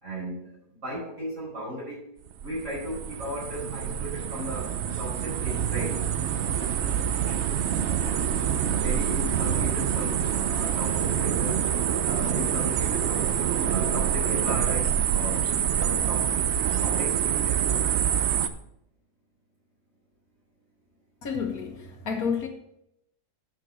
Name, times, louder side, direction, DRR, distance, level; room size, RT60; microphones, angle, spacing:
voice 1, 0.0-2.0 2.4-6.0 8.8-11.7 12.0-13.3 13.6-15.5 15.8-16.5 16.8-17.2, equal, 45° right, -5 dB, 5.4 m, -36 dB
sound 1, 2.3-18.5, right 8 dB, 60° right, 0.7 m, -26 dB
voice 2, 21.2-22.5, left 6 dB, 65° left, 3 dB, 1.7 m, -30 dB
10.0 x 5.2 x 6.8 m, 0.78 s
omnidirectional pair, 1.7 m